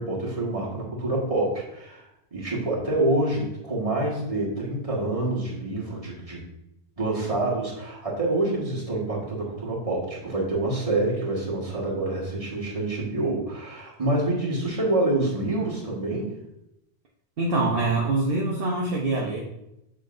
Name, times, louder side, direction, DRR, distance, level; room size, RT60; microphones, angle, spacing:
voice 1, 0.0-2.0 2.3-6.4 7.0-16.3, right 2 dB, 35° right, -4 dB, 1.7 m, -27 dB
voice 2, 17.4-19.4, right 2 dB, 65° right, -3 dB, 1.0 m, -24 dB
7.6 x 5.7 x 2.6 m, 0.84 s
omnidirectional pair, 1.1 m